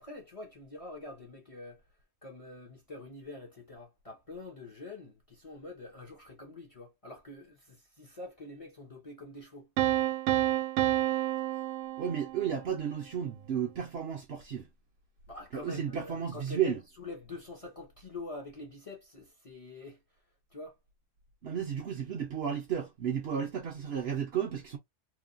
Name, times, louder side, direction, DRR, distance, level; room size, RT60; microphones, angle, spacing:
voice 1, 0.0-1.8 2.2-9.7 15.3-20.0 20.5-20.7, left 3 dB, 35° left, 0.7 m, -45 dB
Piano, 9.8-12.7, right 13 dB, 85° right, 1.0 m, -29 dB
voice 2, 12.0-14.7 15.5-16.8 21.4-24.8, right 8 dB, 60° right, 0.7 m, -33 dB
3.0 x 2.2 x 2.5 m
omnidirectional pair, 1.4 m